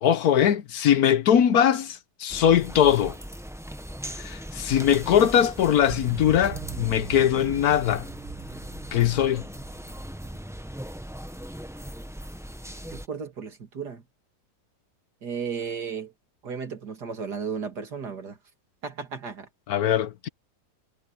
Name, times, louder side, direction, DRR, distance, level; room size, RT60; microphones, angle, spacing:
voice 1, 0.0-3.2 4.2-8.1 8.9-9.4 19.7-20.3, left 9 dB, 65° left, 1.2 m, -21 dB
sound 1, 2.3-13.1, equal, 5° right, 0.6 m, -39 dB
sound 2, 5.9-11.3, right 7 dB, 40° right, 0.7 m, -41 dB
voice 2, 12.9-14.0 15.2-16.1 16.4-18.4 18.8-19.5, right 6 dB, 70° right, 3.0 m, -34 dB
omnidirectional pair, 1.8 m